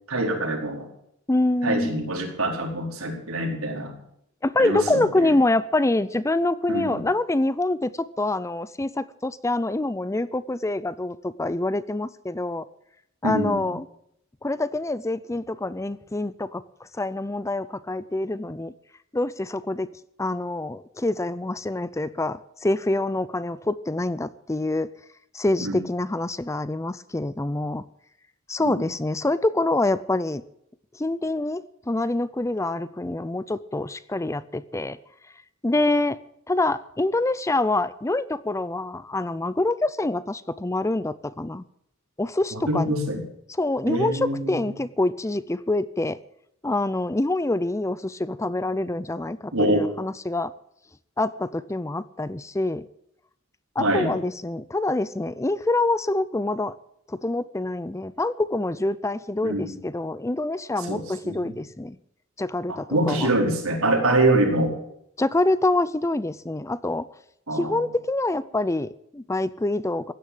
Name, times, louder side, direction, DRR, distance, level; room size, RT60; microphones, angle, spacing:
voice 1, 0.1-0.9 1.6-4.0 4.6-5.3 6.7-7.0 13.2-13.6 25.6-25.8 28.6-28.8 42.5-43.2 43.9-44.6 49.5-49.9 53.8-54.1 59.4-59.8 60.9-61.5 62.9-64.8 67.5-67.8, right 1 dB, 80° right, 1 dB, 4.5 m, -25 dB
voice 2, 1.3-1.9 4.4-12.7 13.2-13.9 14.4-18.7 19.1-19.9 20.2-24.9 25.3-27.8 28.5-30.4 30.9-35.0 35.6-36.2 36.5-41.6 42.2-42.9 43.6-46.2 46.6-50.5 51.2-52.9 53.8-56.7 57.1-62.0 62.4-63.3 65.2-67.1 67.5-70.1, left 2 dB, 15° left, 16 dB, 0.5 m, -26 dB
16.0 x 10.5 x 7.8 m, 0.73 s
head